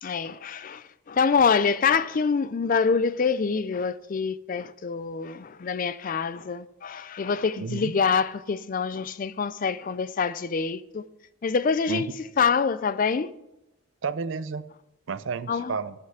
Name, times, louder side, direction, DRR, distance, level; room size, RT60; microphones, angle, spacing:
voice 1, 0.0-11.1 11.4-13.3 15.5-15.8, left 5 dB, 40° left, 0.4 m, -26 dB
voice 2, 7.6-7.9 11.9-12.0 14.0-14.6 15.1-15.9, right 5 dB, 65° right, 0.5 m, -31 dB
9.5 x 5.7 x 7.9 m
head